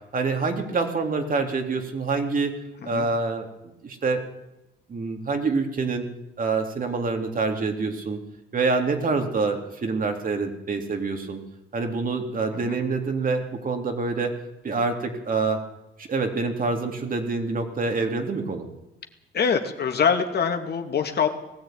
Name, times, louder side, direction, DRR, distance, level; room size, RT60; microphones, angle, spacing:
voice 1, 0.1-2.5 2.9-4.2 4.9-6.1 6.4-8.2 8.5-11.4 11.7-14.4 14.6-15.6 16.0-18.7, right 4 dB, 45° right, 4 dB, 3.5 m, -26 dB
voice 2, 19.3-21.3, left 6 dB, 55° left, 5 dB, 2.6 m, -24 dB
19.5 x 14.5 x 9.4 m, 0.91 s
cardioid pair, 90°, 20 cm